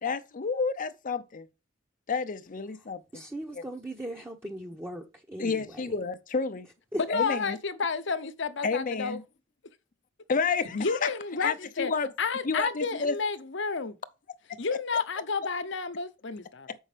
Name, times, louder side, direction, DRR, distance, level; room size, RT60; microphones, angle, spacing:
voice 1, 0.0-1.5 2.1-3.2 3.5-3.6 5.4-6.7 7.1-7.6 8.6-9.2 10.3-11.1 11.4-12.1 12.4-13.2 16.7-16.8, left 4 dB, 45° left, 0.6 m, -30 dB
voice 2, 3.1-6.0 6.9-7.0, right 1 dB, 10° right, 0.8 m, -38 dB
voice 3, 7.0-9.2 10.7-11.9 12.2-14.0 14.6-16.7, left 5 dB, 65° left, 0.9 m, -30 dB
7.0 x 5.5 x 5.0 m
head